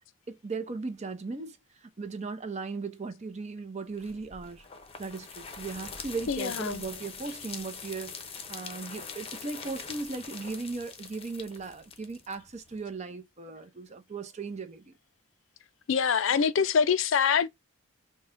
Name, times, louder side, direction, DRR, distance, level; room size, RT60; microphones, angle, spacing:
voice 1, 0.3-4.6 5.0-14.9, right 4 dB, 35° right, 0.6 m, -37 dB
sound 1, 4.0-12.8, left 5 dB, 30° left, 0.7 m, -43 dB
voice 2, 6.3-6.8 15.9-17.5, left 6 dB, 70° left, 0.4 m, -25 dB
5.4 x 2.2 x 2.5 m
head